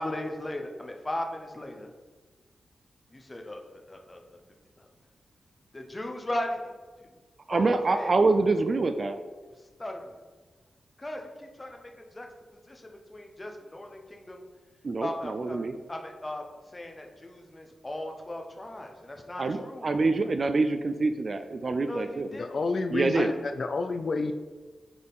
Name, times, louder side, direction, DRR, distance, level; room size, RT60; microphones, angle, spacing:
voice 1, 0.0-1.9 3.1-4.4 4.8-4.9 5.7-6.7 7.0-7.1 7.5-8.2 9.8-10.2 11.0-12.3 12.7-14.4 15.0-15.6 15.9-16.4 16.7-19.9 21.8-22.6 23.3-23.4, left 1 dB, 20° left, 2 dB, 0.9 m, -37 dB
voice 2, 7.5-9.2 14.8-15.8 19.4-22.3 22.9-23.3, right 3 dB, 40° right, 9 dB, 0.4 m, -26 dB
voice 3, 22.4-24.3, left 3 dB, 45° left, 6 dB, 0.4 m, -29 dB
9.5 x 4.3 x 3.6 m, 1.4 s
wide cardioid pair, 145°, 0 cm